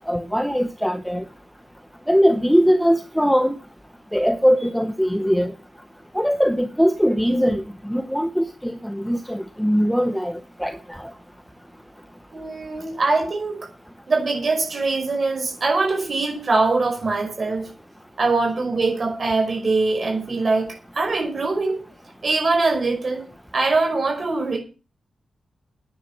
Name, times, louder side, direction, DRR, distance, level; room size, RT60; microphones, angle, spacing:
voice 1, 0.1-1.2 2.1-3.6 4.1-5.5 6.1-11.1, equal, ahead, 0.8 m, -21 dB
voice 2, 12.3-13.7 14.1-17.7 18.2-21.8 22.2-23.3 23.5-24.6, right 3 dB, 35° right, 5.3 m, -22 dB
11.0 x 9.6 x 7.2 m
wide cardioid pair, 180°, 0 cm